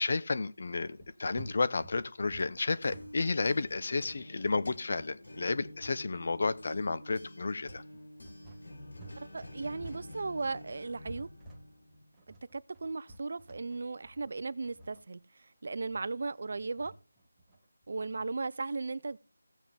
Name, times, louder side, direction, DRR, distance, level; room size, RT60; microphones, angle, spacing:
voice 1, 0.0-7.8, left 3 dB, 50° left, 0.7 m, -32 dB
sound 1, 1.0-9.2 9.5-18.3, right 1 dB, 5° right, 1.4 m, -52 dB
sound 2, 2.5-12.1, left 1 dB, 70° left, 4.2 m, -49 dB
voice 2, 9.3-11.3 12.5-16.9 17.9-19.2, right 3 dB, 50° right, 0.5 m, -36 dB
16.5 x 7.1 x 3.4 m
figure-of-eight pair, 170°, 0 cm